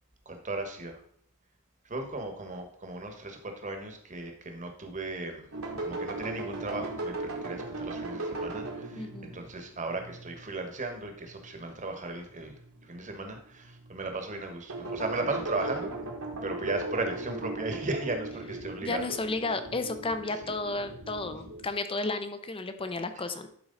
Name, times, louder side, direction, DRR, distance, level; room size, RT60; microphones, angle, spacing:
voice 1, 0.2-1.0 1.8-5.5 5.8-12.5 12.8-15.9 16.4-19.0, right 2 dB, 35° right, 4 dB, 1.3 m, -36 dB
sound 1, 5.5-11.7 12.3-12.9 13.5-14.1 14.7-21.6, right 2 dB, 70° right, 1.8 m, -38 dB
voice 2, 9.0-9.4 17.3-17.5 18.8-23.5, left 3 dB, 25° left, 9 dB, 0.7 m, -33 dB
11.5 x 4.6 x 4.0 m, 0.63 s
head